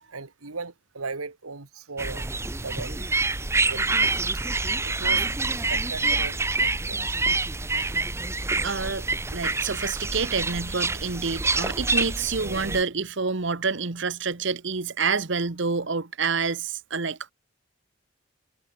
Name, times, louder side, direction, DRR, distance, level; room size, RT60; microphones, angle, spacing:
voice 1, 0.1-2.3 2.6-3.1 3.7-4.0 4.8-5.3 5.7-7.0, right 4 dB, 90° right, 1.7 m, -37 dB
sound 1, 2.0-12.8, right 3 dB, 10° right, 0.7 m, -26 dB
voice 2, 8.6-9.1 9.3-17.3, right 4 dB, 55° right, 1.1 m, -28 dB
head